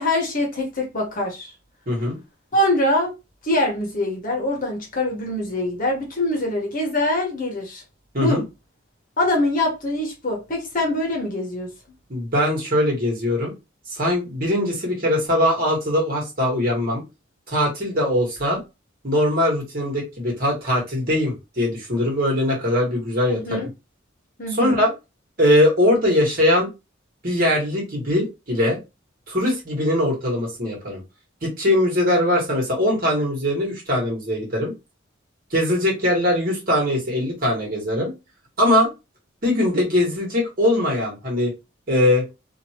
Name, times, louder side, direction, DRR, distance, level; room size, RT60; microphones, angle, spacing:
voice 1, 0.0-1.5 2.5-3.1 3.4-7.8 8.2-8.4 9.2-11.7 23.3-23.7 24.4-24.8, left 1 dB, 45° left, 1.1 m, -23 dB
voice 2, 1.9-2.2 8.1-8.4 12.1-13.5 13.9-17.0 17.5-18.6 19.0-23.7 24.6-24.9 25.4-26.7 27.2-28.8 29.3-31.0 31.4-34.7 35.5-38.1 38.6-38.9 39.4-41.5 41.9-42.2, left 1 dB, 45° right, 1.6 m, -21 dB
2.8 x 2.7 x 2.8 m
head